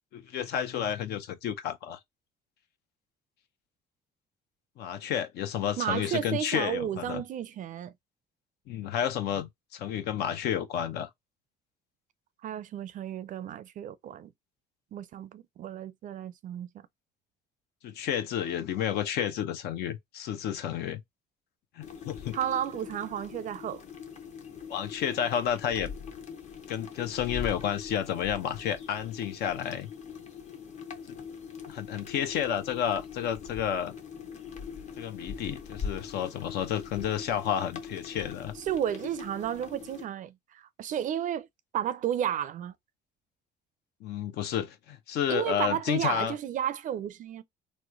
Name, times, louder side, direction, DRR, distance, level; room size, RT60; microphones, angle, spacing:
voice 1, 0.1-2.0 4.8-7.2 8.7-11.1 17.8-21.0 21.8-22.4 24.7-25.9 26.7-29.9 31.1-31.2 31.7-33.9 35.0-38.5 44.0-46.3, left 9 dB, 75° left, 0.7 m, -31 dB
voice 2, 5.8-7.9 12.4-14.3 14.9-16.7 22.3-23.8 38.7-41.5 41.7-42.7 45.3-47.4, right 10 dB, 50° right, 0.4 m, -32 dB
sound 1, 21.8-40.0, left 6 dB, 45° left, 0.8 m, -42 dB
3.0 x 2.1 x 3.7 m
cardioid pair, 110°, 17 cm